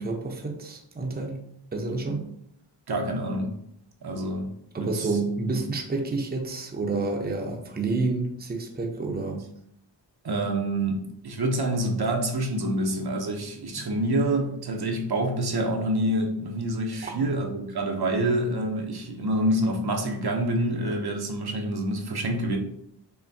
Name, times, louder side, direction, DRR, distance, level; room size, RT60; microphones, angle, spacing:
voice 1, 0.0-1.4 1.7-2.3 4.7-9.4 13.8-14.0 17.0-17.3, right 3 dB, 20° right, 1 dB, 0.7 m, -29 dB
voice 2, 2.9-3.5 4.0-4.5 4.8-5.2 10.2-22.6, right 1 dB, 60° right, 1 dB, 0.7 m, -27 dB
5.6 x 2.2 x 2.6 m, 0.73 s
cardioid pair, 55°, 44 cm